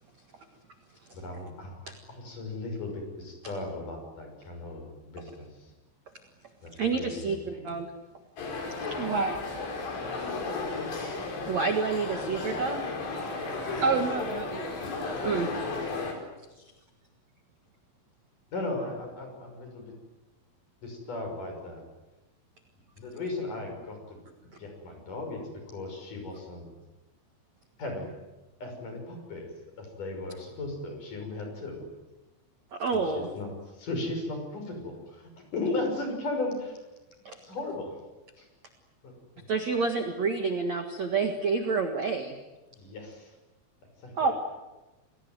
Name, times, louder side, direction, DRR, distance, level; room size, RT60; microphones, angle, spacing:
voice 1, 1.1-5.7 6.6-7.7 18.5-19.9 20.8-21.8 23.0-26.7 27.8-28.1 28.6-29.5 29.8-31.9 32.9-36.8 37.4-38.0 38.4-38.5 39.0-39.5 42.8-43.4 44.0-44.3, left 2 dB, 40° left, 4 dB, 7.4 m, -36 dB
voice 2, 6.8-7.9 11.5-12.8 15.2-15.5 32.7-33.3 37.2-37.4 39.5-42.4 44.2-44.3, right 4 dB, 55° right, 5 dB, 2.1 m, -28 dB
sound 1, 8.4-16.1, left 3 dB, 60° left, 6.8 m, -34 dB
voice 3, 8.9-9.4 13.8-14.7, right 4 dB, 80° right, 5 dB, 1.5 m, -28 dB
29.0 x 20.0 x 9.3 m, 1.1 s
omnidirectional pair, 5.6 m